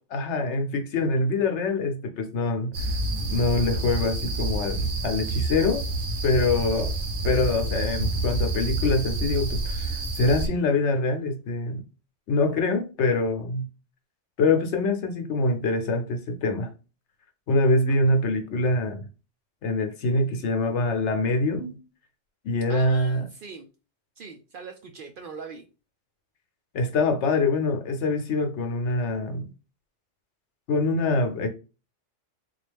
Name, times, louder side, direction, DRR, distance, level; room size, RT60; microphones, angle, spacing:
voice 1, 0.1-2.7 3.3-5.8 6.2-6.9 7.2-11.8 12.3-13.7 14.4-16.7 17.5-19.1 19.6-21.8 22.4-23.3 26.7-29.5 30.7-31.5, left 2 dB, 70° left, 1.0 m, -24 dB
sound 1, 2.7-10.5, right 2 dB, 90° right, 1.1 m, -28 dB
voice 2, 22.7-23.7 24.2-25.6, right 4 dB, 60° right, 0.6 m, -41 dB
4.0 x 2.4 x 3.3 m
omnidirectional pair, 1.3 m